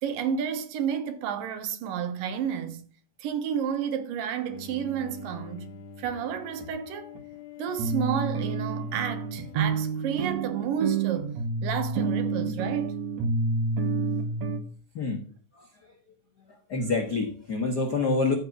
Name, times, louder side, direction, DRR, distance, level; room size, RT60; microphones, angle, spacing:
voice 1, 0.0-2.8 3.2-7.1 7.6-11.4 11.6-13.0, right 8 dB, 80° right, 2.9 m, -31 dB
Bowed string instrument, 4.4-11.7, left 6 dB, 60° left, 2.3 m, -46 dB
sound 1, 6.0-6.1 6.6-6.7 7.2-7.3 7.8-14.6, right 4 dB, 60° right, 2.4 m, -29 dB
voice 2, 16.7-18.3, left 3 dB, 80° left, 0.9 m, -26 dB
14.5 x 5.3 x 6.0 m
omnidirectional pair, 4.0 m